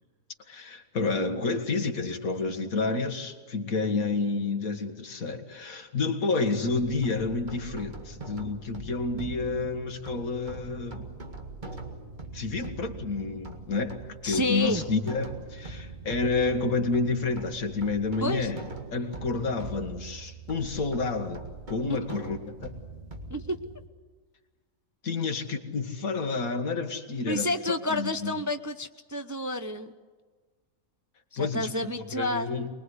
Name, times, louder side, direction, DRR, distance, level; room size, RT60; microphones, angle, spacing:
voice 1, 0.5-11.1 12.3-18.6 18.9-22.7 25.0-27.5 27.9-28.4 31.4-31.7 32.1-32.7, left 3 dB, 75° left, 6 dB, 2.2 m, -29 dB
sound 1, 6.6-23.9, right 3 dB, 35° right, 2.1 m, -42 dB
voice 2, 14.2-14.8 18.2-18.5 21.9-22.0 23.3-23.6 27.3-29.9 31.3-32.6, left 1 dB, 15° right, 7 dB, 0.6 m, -30 dB
24.0 x 21.5 x 8.1 m, 1.4 s
omnidirectional pair, 1.5 m